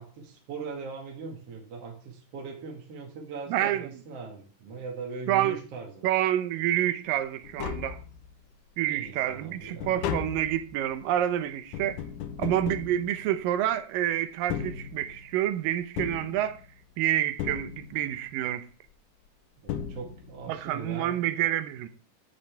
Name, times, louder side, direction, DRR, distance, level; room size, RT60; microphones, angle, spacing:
voice 1, 0.0-6.1 8.8-10.2 19.6-21.2, right 4 dB, 50° right, 2.8 m, -40 dB
voice 2, 3.5-3.9 5.3-5.6 6.0-8.0 8.8-12.0 12.4-16.6 17.0-18.7 20.5-21.9, right 12 dB, 85° right, 2.6 m, -28 dB
Tap, 7.2-7.3 7.4-8.5 9.0-13.7 14.3-15.4 16.0-16.9 17.4-18.2 19.2-19.3 19.7-20.5 20.8-20.9, left 8 dB, 75° left, 2.3 m, -36 dB
12.5 x 8.3 x 3.4 m
omnidirectional pair, 3.8 m